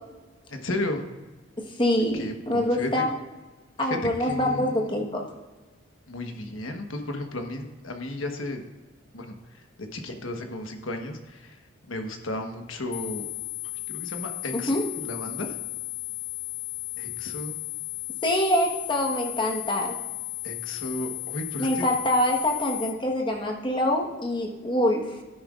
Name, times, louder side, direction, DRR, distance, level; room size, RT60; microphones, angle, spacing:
voice 1, 0.5-1.1 2.1-3.0 3.8-4.9 6.1-8.6 9.1-9.3 9.8-11.6 11.9-13.3 13.9-15.6 17.0-17.6 20.4-21.8, left 1 dB, 85° left, 4 dB, 1.2 m, -34 dB
voice 2, 1.8-3.1 3.8-5.2 14.5-14.8 18.2-19.9 21.6-25.1, left 1 dB, 25° left, 0 dB, 1.2 m, -25 dB
sound 1, 12.9-22.9, left 29 dB, 60° left, 0.6 m, -35 dB
13.0 x 10.0 x 2.5 m, 1.2 s
head